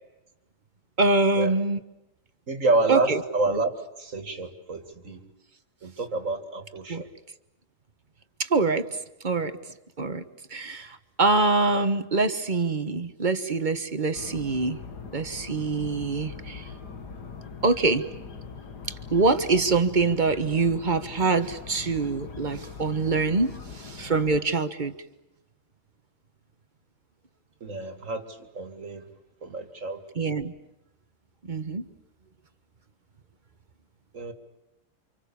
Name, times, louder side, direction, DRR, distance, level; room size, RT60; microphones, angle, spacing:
voice 1, 1.0-1.8 2.9-3.2 3.5-3.6 6.9-7.0 8.4-8.9 9.2-9.6 10.0-10.2 10.5-14.8 15.1-16.7 17.6-18.1 19.1-24.9 30.1-30.5 31.5-31.8, right 3 dB, 30° right, 10 dB, 1.4 m, -24 dB
voice 2, 2.5-3.7 4.0-5.3 5.8-7.1 27.6-29.0 29.4-30.0 34.1-34.3, right 2 dB, 50° right, 7 dB, 2.6 m, -28 dB
sound 1, 14.1-24.4, left 5 dB, 85° left, 2.7 m, -41 dB
29.5 x 27.0 x 7.1 m, 0.92 s
omnidirectional pair, 1.7 m